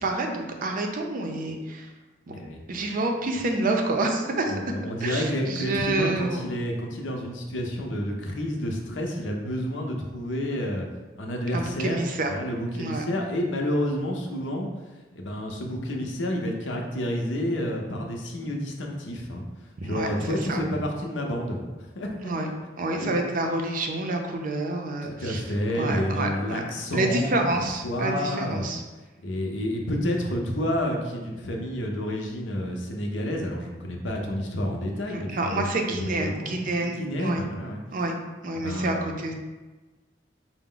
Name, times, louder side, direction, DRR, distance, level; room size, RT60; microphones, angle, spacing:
voice 1, 0.0-1.9 2.3-2.4 2.7-4.6 5.0-6.4 11.5-12.3 12.7-13.0 19.8-20.1 20.5-20.6 22.2-22.5 22.8-25.4 25.7-26.6 26.9-28.8 35.1-37.4 37.9-38.2 38.4-39.3, right 2 dB, 50° right, 3 dB, 0.5 m, -28 dB
voice 2, 4.5-10.9 11.2-12.0 12.3-14.7 15.1-19.4 19.8-21.6 22.0-22.1 22.4-22.5 23.0-23.1 25.0-27.5 27.8-28.7 29.2-37.8 38.6-39.1, equal, 80° left, 1 dB, 0.7 m, -29 dB
4.6 x 2.0 x 3.8 m, 1.2 s
head